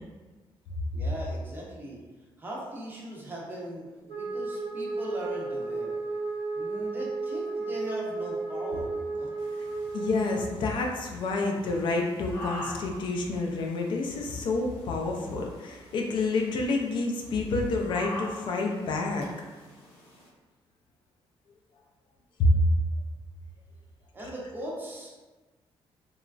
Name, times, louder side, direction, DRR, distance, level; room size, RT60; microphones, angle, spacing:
voice 1, 0.9-2.0 2.4-6.0 6.5-9.3 24.1-25.1, right 1 dB, 20° right, -4 dB, 0.5 m, -39 dB
Wind instrument woodwind instrument, 4.1-10.5, right 3 dB, 90° right, 1.0 m, -33 dB
sound 1, 9.4-20.3, equal, 85° left, 0.8 m, -46 dB
voice 2, 9.9-19.3 22.4-22.6, left 2 dB, 55° left, 1 dB, 0.3 m, -28 dB
3.0 x 2.3 x 2.4 m, 1.3 s
cardioid pair, 180°, 10 cm